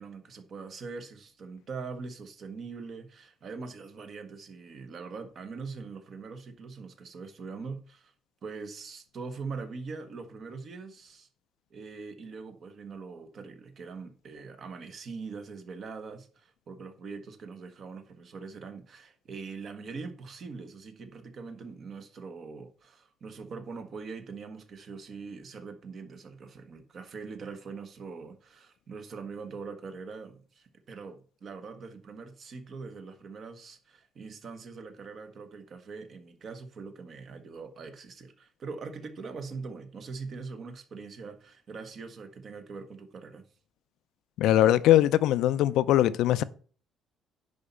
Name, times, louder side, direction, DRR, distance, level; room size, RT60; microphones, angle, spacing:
voice 1, 0.0-8.1 8.4-11.3 11.7-43.5, right 4 dB, 40° right, 1.4 m, -42 dB
voice 2, 44.4-46.4, left 13 dB, 75° left, 0.5 m, -21 dB
10.0 x 4.2 x 6.9 m
cardioid pair, 150°, 0 cm